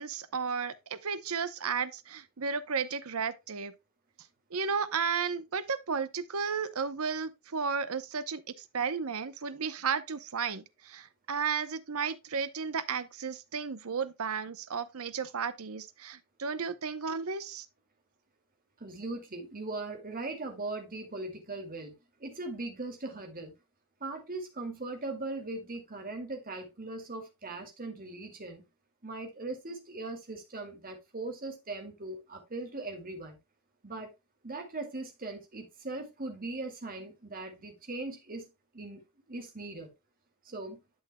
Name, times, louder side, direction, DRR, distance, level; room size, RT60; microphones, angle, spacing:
voice 1, 0.0-3.7 4.5-17.7, right 6 dB, 70° right, 0.8 m, -33 dB
voice 2, 18.8-21.9 22.2-23.5 24.0-28.6 29.0-33.4 33.8-34.1 34.4-39.0 39.3-39.9 40.4-40.8, right 2 dB, 40° right, 2.2 m, -39 dB
11.5 x 6.5 x 2.2 m
head